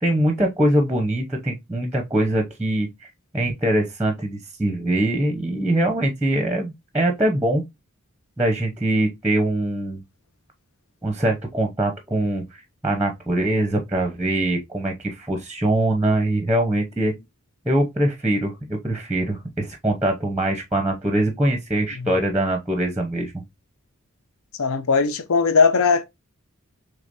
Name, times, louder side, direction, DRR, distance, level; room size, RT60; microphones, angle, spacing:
voice 1, 0.0-2.9 3.3-7.6 8.4-10.0 11.0-12.4 12.8-17.1 17.7-23.4, right 1 dB, 5° right, 0.8 m, -23 dB
voice 2, 24.6-26.0, left 5 dB, 70° left, 0.6 m, -19 dB
5.0 x 3.4 x 2.6 m
head